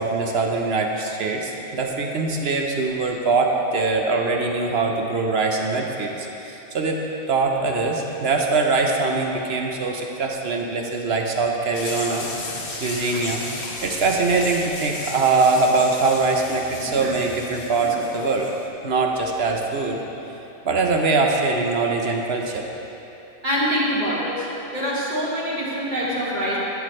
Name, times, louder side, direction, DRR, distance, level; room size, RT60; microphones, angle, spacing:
voice 1, 0.0-6.2 6.4-7.0 7.3-12.3 12.8-13.4 13.8-18.5 18.8-20.0 20.6-22.6, right 3 dB, 55° right, 1 dB, 0.9 m, -22 dB
sound 1, 11.7-18.7, left 2 dB, 80° left, 1.6 m, -35 dB
voice 2, 23.4-24.5 24.7-26.6, equal, 35° right, -8 dB, 2.0 m, -25 dB
12.5 x 7.9 x 3.2 m, 3.0 s
omnidirectional pair, 1.5 m